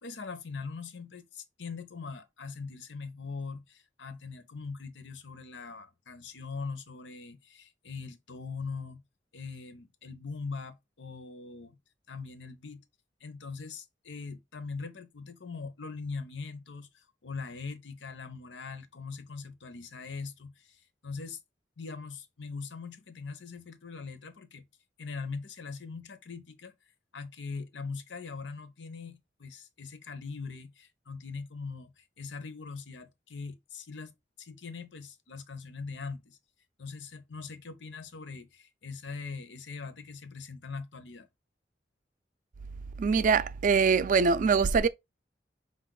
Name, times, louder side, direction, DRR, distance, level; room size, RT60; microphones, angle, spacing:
voice 1, 0.0-9.0 9.3-11.8 12.1-12.8 13.2-21.4 21.8-24.6 25.0-26.7 27.1-36.4 36.8-41.3, left 4 dB, 90° left, 0.7 m, -41 dB
voice 2, 43.0-44.9, right 5 dB, 45° right, 0.3 m, -23 dB
5.1 x 2.5 x 3.7 m
head